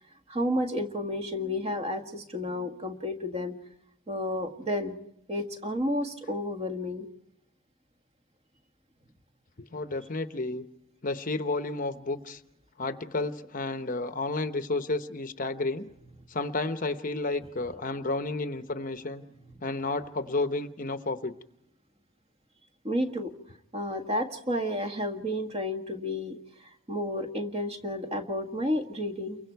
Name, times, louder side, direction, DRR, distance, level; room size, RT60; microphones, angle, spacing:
voice 1, 0.3-3.5 4.1-5.0 5.3-7.1 22.8-23.3 23.7-26.4 26.9-29.4, left 1 dB, 30° right, 5 dB, 1.7 m, -31 dB
voice 2, 9.7-10.6 11.0-12.4 12.8-15.9 16.3-19.2 19.6-21.3, left 2 dB, 40° left, 9 dB, 0.9 m, -31 dB
29.5 x 23.5 x 4.6 m, 0.77 s
head